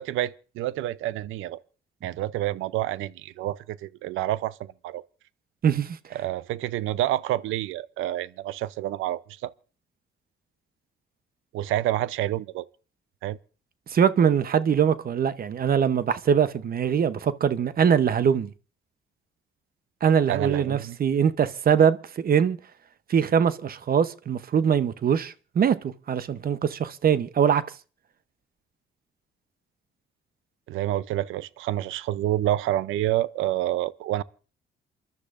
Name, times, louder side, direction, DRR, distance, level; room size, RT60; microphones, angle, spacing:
voice 1, 0.0-1.6 2.0-5.0 6.1-9.5 11.5-12.7 13.2-13.4 20.3-21.0 30.7-34.2, right 14 dB, 85° right, 0.6 m, -28 dB
voice 2, 5.6-6.0 13.9-18.5 20.0-22.6 23.1-27.6, right 7 dB, 50° right, 0.8 m, -22 dB
28.0 x 12.0 x 2.5 m
cardioid pair, 90°, 20 cm